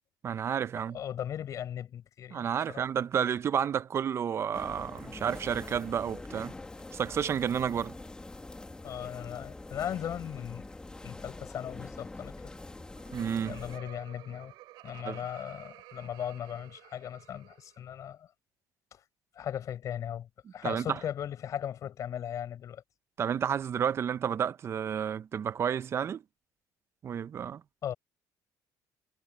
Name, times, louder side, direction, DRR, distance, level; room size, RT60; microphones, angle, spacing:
voice 1, 0.2-1.0 2.3-6.5 6.9-8.0 13.1-13.6 15.0-15.2 20.6-20.8 23.2-26.2 27.0-27.6, right 8 dB, 40° right, 0.6 m, -31 dB
voice 2, 0.8-2.8 8.8-10.6 11.0-12.5 13.5-14.5 14.8-18.3 18.9-19.0 19.3-22.8 27.8-27.9, left 10 dB, 50° left, 4.5 m, -38 dB
sound 1, 4.5-13.8, left 2 dB, 10° left, 1.9 m, -44 dB
Laughter, 12.7-17.9, right 17 dB, 85° right, 7.9 m, -52 dB
cardioid pair, 135°, 7 cm